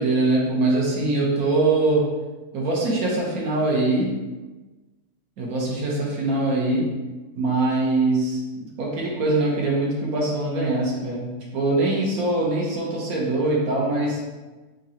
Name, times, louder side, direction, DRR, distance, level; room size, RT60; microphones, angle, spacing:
voice 1, 0.0-2.1 2.5-4.1 5.4-6.9 7.3-14.2, right 2 dB, 70° right, -3 dB, 1.4 m, -23 dB
3.7 x 2.6 x 4.2 m, 1.2 s
omnidirectional pair, 1.6 m